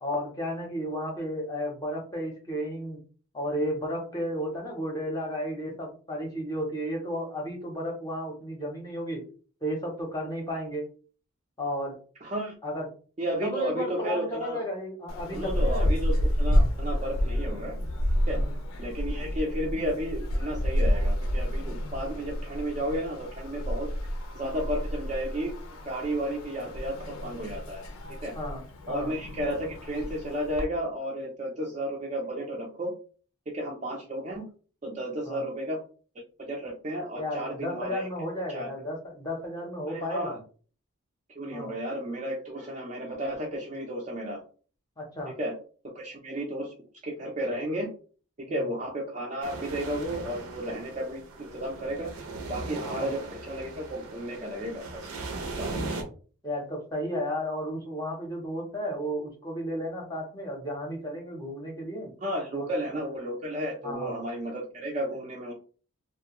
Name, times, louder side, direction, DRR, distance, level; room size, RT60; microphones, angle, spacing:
voice 1, 0.0-3.0 3.3-9.2 9.6-10.8 11.6-12.0 12.6-12.9 13.4-15.9 18.3-18.5 28.3-28.6 28.9-29.1 35.3-35.4 37.2-40.4 41.5-41.7 45.0-45.4 48.5-48.7 52.8-53.1 56.4-62.1 62.5-63.0 63.8-64.2, equal, 15° left, 0 dB, 0.6 m, -33 dB
voice 2, 12.2-12.5 13.2-14.6 15.3-17.8 18.3-18.4 18.8-23.9 24.3-25.5 25.9-27.8 28.2-28.3 28.9-32.9 33.5-34.5 34.8-35.8 36.4-38.1 38.5-38.7 39.9-40.4 41.4-44.4 45.4-45.5 45.9-46.7 47.0-47.9 48.4-52.1 52.5-55.1 55.6-55.8 62.2-65.5, equal, 30° right, -1 dB, 0.4 m, -33 dB
sound 1, 15.1-30.6, equal, 75° left, 0.5 m, -29 dB
sound 2, 49.4-56.0, right 3 dB, 80° right, 0.6 m, -38 dB
2.4 x 2.1 x 2.9 m, 0.40 s
head